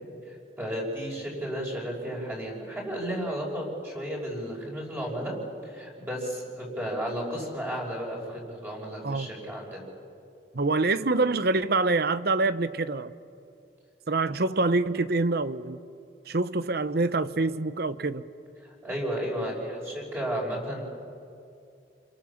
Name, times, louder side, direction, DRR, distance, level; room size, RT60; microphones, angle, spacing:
voice 1, 0.3-5.3 5.6-9.9 14.3-14.4 18.6-20.8, equal, 15° right, -2 dB, 5.8 m, -33 dB
voice 2, 10.5-13.1 14.1-15.8 16.3-18.3, right 3 dB, 60° right, 14 dB, 0.9 m, -26 dB
30.0 x 23.0 x 7.2 m, 2.4 s
head